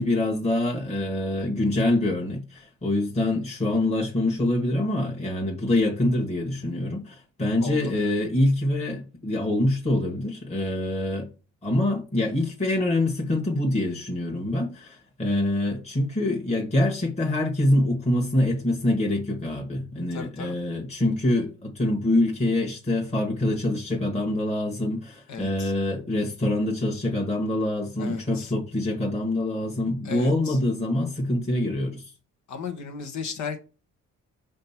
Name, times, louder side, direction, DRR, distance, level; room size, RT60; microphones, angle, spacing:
voice 1, 0.0-11.3 11.6-32.1, left 1 dB, 20° left, 1.7 m, -25 dB
voice 2, 7.6-8.1 20.1-20.6 25.3-25.7 28.0-28.5 30.0-30.6 32.5-33.6, left 5 dB, 70° left, 1.5 m, -35 dB
5.3 x 3.8 x 5.8 m
cardioid pair, 90°, 30 cm